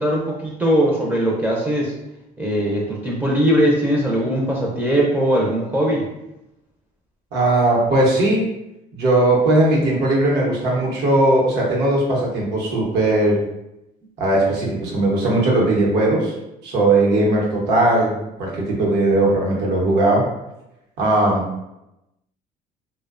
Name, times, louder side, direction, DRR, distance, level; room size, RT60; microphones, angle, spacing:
voice 1, 0.0-1.9 2.4-6.0, equal, 10° right, -3 dB, 0.4 m, -20 dB
voice 2, 7.3-8.4 8.9-13.4 14.2-16.3 16.6-20.2 21.0-21.7, right 2 dB, 75° right, -3 dB, 0.8 m, -18 dB
2.5 x 2.1 x 2.4 m, 0.92 s
cardioid pair, 110°, 17 cm